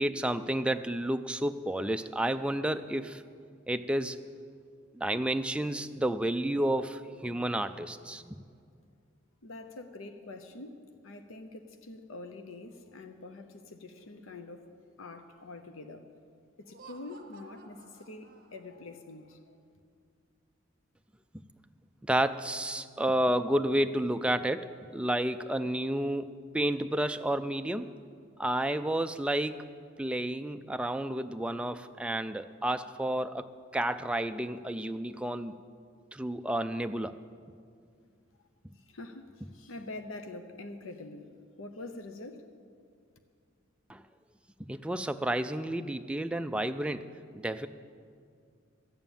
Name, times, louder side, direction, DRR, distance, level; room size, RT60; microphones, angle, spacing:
voice 1, 0.0-3.2 3.7-4.2 4.9-8.3 22.0-27.9 28.4-29.6 30.0-33.5 33.7-35.5 36.1-37.1 43.9-44.0 44.6-47.1 47.4-47.7, right 1 dB, 5° right, 9 dB, 0.3 m, -31 dB
voice 2, 9.4-16.1 16.6-19.6 38.3-38.4 38.7-42.5, left 2 dB, 90° left, 8 dB, 0.7 m, -45 dB
Laughter, 16.6-18.9, right 3 dB, 45° right, 0.8 m, -54 dB
13.5 x 7.0 x 9.0 m, 2.2 s
head